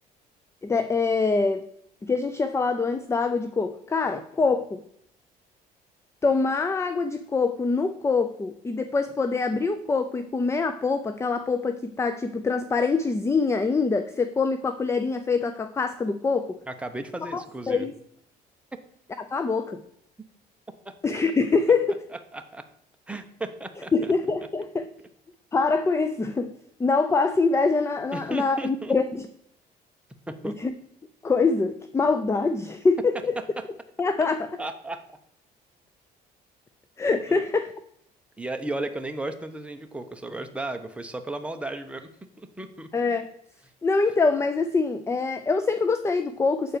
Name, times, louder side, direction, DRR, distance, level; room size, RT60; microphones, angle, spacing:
voice 1, 0.6-1.7 2.0-4.8 6.2-16.6 17.3-17.4 17.7-17.9 19.2-19.8 21.0-22.0 23.9-24.9 25.5-29.2 30.6-30.7 31.2-33.3 34.0-34.5 37.0-37.7 42.9-43.3 43.8-46.8, left 4 dB, 15° left, 10 dB, 0.5 m, -24 dB
voice 2, 16.7-17.9 18.7-18.8 20.8-20.9 22.3-22.6 23.1-24.1 28.1-28.9 30.3-30.6 33.4-33.6 34.6-35.2 37.3-37.4 38.4-42.1 42.4-42.9, right 2 dB, 5° right, 6 dB, 0.9 m, -35 dB
7.7 x 4.4 x 6.7 m, 0.71 s
cardioid pair, 110°, 17 cm